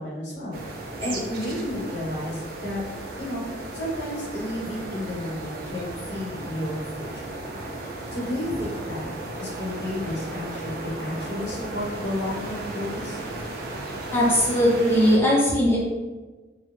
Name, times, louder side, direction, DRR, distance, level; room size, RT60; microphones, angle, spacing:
voice 1, 0.0-2.8 3.2-3.4 3.7-7.7 8.1-9.1 9.4-13.2, left 1 dB, 70° left, -5 dB, 0.8 m, -32 dB
sound 1, 0.5-15.2, right 2 dB, 55° right, 0.3 m, -35 dB
voice 2, 14.1-15.8, equal, 15° left, -5 dB, 0.4 m, -19 dB
2.3 x 2.0 x 3.1 m, 1.3 s
head